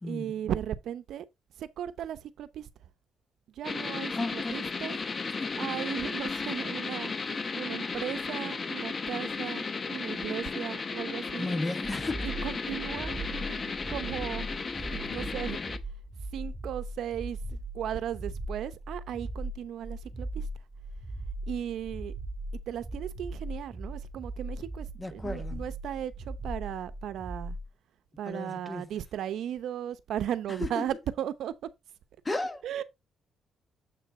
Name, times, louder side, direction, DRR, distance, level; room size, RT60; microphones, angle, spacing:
voice 1, 0.0-1.3 1.6-2.9 3.5-5.0 5.6-11.5 12.2-13.2 13.4-13.6 13.9-14.5 15.1-15.8 16.3-20.5 21.5-22.1 22.7-27.6 28.2-31.5 32.6-32.8, right 10 dB, 75° right, 0.8 m, -36 dB
sound 1, 3.6-15.8, left 4 dB, 35° left, 0.9 m, -34 dB
voice 2, 4.1-4.7 5.4-5.6 11.4-12.2 25.0-25.6 28.3-28.9 30.6-30.8 32.2-32.6, left 2 dB, 20° left, 1.2 m, -34 dB
sound 2, 11.8-27.7, right 1 dB, 15° right, 1.9 m, -39 dB
7.6 x 6.0 x 3.6 m
cardioid pair, 90°, 0 cm